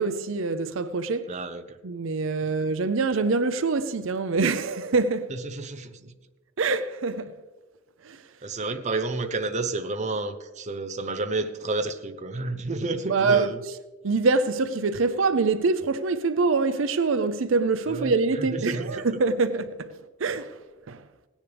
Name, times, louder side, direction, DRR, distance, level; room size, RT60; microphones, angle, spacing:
voice 1, 0.0-1.3 1.8-5.3 6.6-7.3 8.0-8.2 13.1-13.5 14.0-20.6 20.9-21.1, right 4 dB, 70° right, 0.6 m, -25 dB
voice 2, 1.3-1.8 2.4-2.5 5.3-6.1 8.4-13.6 17.9-19.0, right 3 dB, 35° right, 0.7 m, -31 dB
17.5 x 10.0 x 3.4 m
head